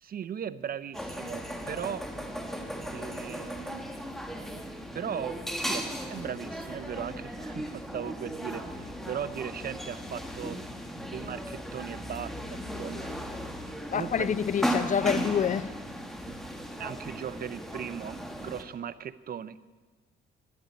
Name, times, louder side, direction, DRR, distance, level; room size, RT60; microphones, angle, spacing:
voice 1, 0.0-2.0 2.9-3.9 4.9-10.6 11.1-13.2 13.6-14.3 16.2-16.4 16.8-19.6, right 8 dB, 50° right, 0.6 m, -38 dB
sound 1, 0.9-18.6, equal, ahead, 1.6 m, -36 dB
voice 2, 13.9-15.8, left 7 dB, 40° left, 0.4 m, -27 dB
12.0 x 11.0 x 9.1 m
cardioid pair, 90°, 20 cm